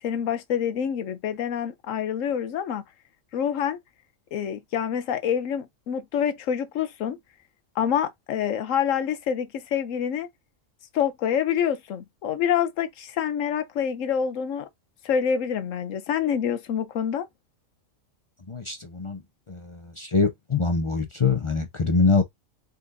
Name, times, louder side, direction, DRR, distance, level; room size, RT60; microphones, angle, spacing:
voice 1, 0.0-2.8 3.3-3.8 4.3-7.2 7.8-10.3 10.9-14.7 15.0-17.3, left 8 dB, 90° left, 1.1 m, -26 dB
voice 2, 18.5-19.2 19.5-22.2, left 4 dB, 40° left, 0.4 m, -24 dB
5.3 x 3.9 x 2.6 m
omnidirectional pair, 1.3 m